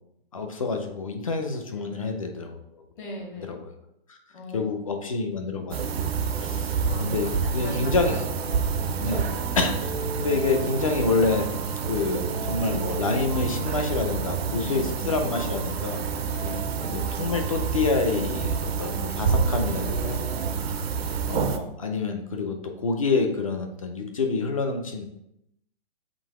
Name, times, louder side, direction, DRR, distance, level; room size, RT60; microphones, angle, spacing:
voice 1, 0.3-2.6 3.5-3.7 4.1-4.2 4.5-6.1 6.4-8.2 9.0-9.2 9.6-11.5 11.9-16.0 16.9-20.2 20.5-20.9 21.3-25.0, left 4 dB, 35° left, 5 dB, 0.4 m, -27 dB
voice 2, 3.0-3.6 4.3-4.8 6.8-8.2 14.6-14.9 16.4-16.6, left 2 dB, 55° left, -1 dB, 1.5 m, -39 dB
sound 1, 5.7-21.6, right 6 dB, 80° right, 0.6 m, -28 dB
sound 2, 7.6-20.5, right 1 dB, 30° right, 0.4 m, -39 dB
3.8 x 2.7 x 4.8 m, 0.81 s
hypercardioid pair, 175°, 31 cm